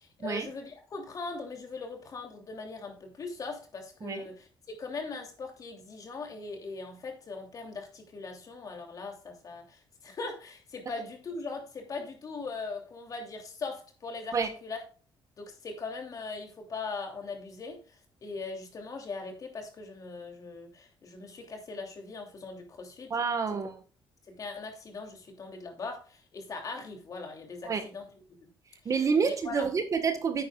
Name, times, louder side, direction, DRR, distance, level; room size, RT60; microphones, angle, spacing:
voice 1, 0.0-14.8 15.4-23.1 23.5-23.6 24.3-28.1 28.4-28.5 28.8-28.9 29.2-29.7, left 4 dB, 40° left, 2.9 m, -40 dB
voice 2, 23.1-23.8 27.6-27.8 28.8-30.4, right 5 dB, 40° right, 1.4 m, -28 dB
10.5 x 8.9 x 2.4 m
cardioid pair, 125°, 9 cm